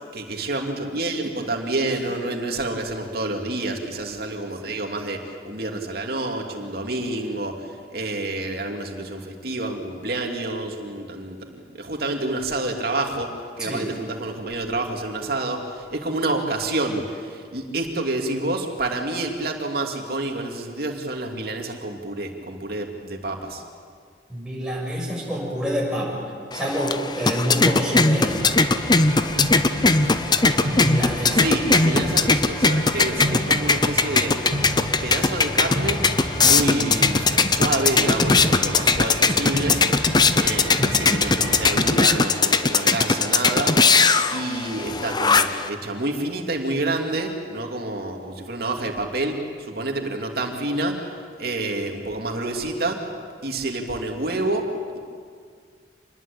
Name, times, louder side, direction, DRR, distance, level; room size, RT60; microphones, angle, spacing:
voice 1, 0.1-23.6 31.3-34.4 35.0-36.0 36.4-39.8 40.4-43.8 44.3-51.1 51.4-53.1 53.4-55.0, right 2 dB, 60° right, 3 dB, 2.9 m, -28 dB
voice 2, 24.3-26.2 26.5-28.4 30.7-31.5, equal, 5° right, -4 dB, 6.6 m, -27 dB
sound 1, 26.5-45.7, left 4 dB, 25° left, 0.8 m, -20 dB
sound 2, 28.3-41.7, equal, 25° right, 5.2 m, -31 dB
26.5 x 20.5 x 8.8 m, 2.1 s
head